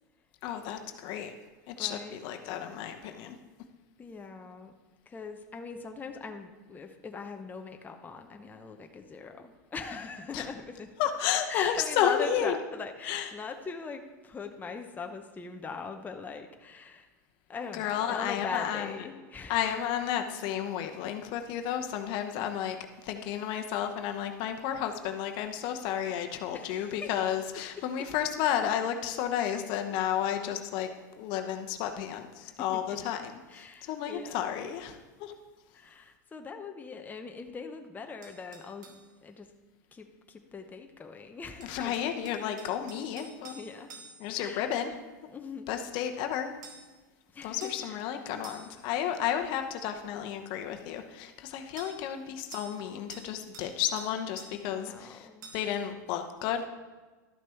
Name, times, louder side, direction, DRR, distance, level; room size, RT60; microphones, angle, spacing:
voice 1, 0.4-1.3 1.7-3.3 10.3-10.5 11.0-12.6 13.0-13.3 17.7-18.9 19.5-22.8 23.0-30.9 31.2-33.2 33.8-35.3 41.7-43.6 44.2-44.9 45.7-46.5 47.4-55.3 55.5-56.7, left 10 dB, 55° left, 6 dB, 0.9 m, -32 dB
voice 2, 1.8-2.6 4.0-4.7 5.1-10.9 11.5-17.1 17.5-19.6 26.5-27.1 27.8-27.9 32.4-33.0 33.5-34.5 35.7-39.5 39.9-42.0 43.5-43.9 44.4-44.7 45.3-45.7 47.3-48.1 54.7-55.5, left 4 dB, 15° left, 5 dB, 0.8 m, -41 dB
sound 1, 38.2-39.0 41.6-44.4 46.6-46.9 47.6-47.9 48.4-48.8 51.8-52.0 52.5-52.8 53.1-53.7 54.0-54.6 55.4-55.8, right 4 dB, 80° right, 1.6 m, -49 dB
12.5 x 6.0 x 4.5 m, 1.3 s
hypercardioid pair, 105°, 10 cm